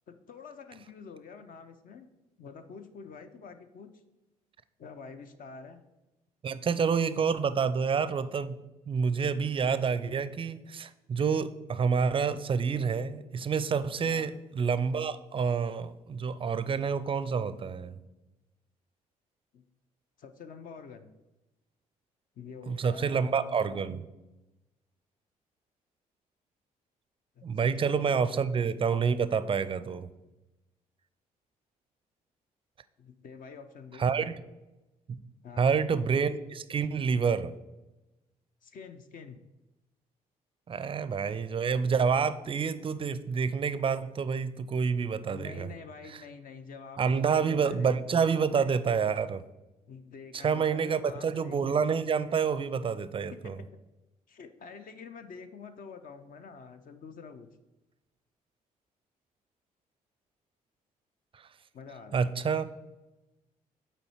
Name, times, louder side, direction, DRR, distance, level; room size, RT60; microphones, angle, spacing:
voice 1, 0.1-2.1 2.4-4.0 4.8-5.8 14.0-14.3 19.5-19.6 20.2-21.1 22.4-23.8 27.4-28.4 33.0-34.0 35.4-35.8 38.6-39.4 45.3-48.0 49.9-51.9 53.3-53.6 54.3-57.5 61.7-62.3, left 5 dB, 45° left, 8 dB, 0.6 m, -47 dB
voice 2, 6.4-8.6 8.9-18.0 22.7-24.0 27.4-30.1 34.0-34.4 35.1-35.2 35.6-37.6 40.7-45.7 47.0-49.4 50.3-53.6 61.3-61.4 62.1-62.7, right 6 dB, 30° right, 15 dB, 0.5 m, -28 dB
7.6 x 4.3 x 4.7 m, 1.0 s
figure-of-eight pair, 45°, 19 cm